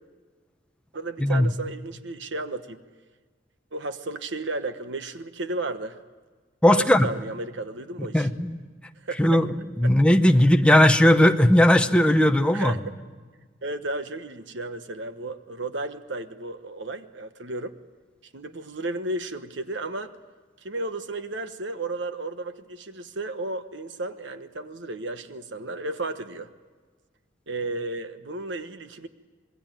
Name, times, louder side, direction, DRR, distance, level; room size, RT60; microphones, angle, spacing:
voice 1, 0.9-2.8 3.7-6.0 6.8-8.3 9.0-9.4 9.8-9.9 12.5-13.0 13.6-17.7 18.2-20.2 20.6-26.5 27.5-29.1, right 2 dB, 65° right, 10 dB, 1.1 m, -33 dB
voice 2, 6.6-7.1 8.1-8.6 9.2-9.5 9.8-12.7, left 1 dB, 5° left, 6 dB, 0.9 m, -18 dB
26.5 x 21.0 x 9.2 m, 1.4 s
head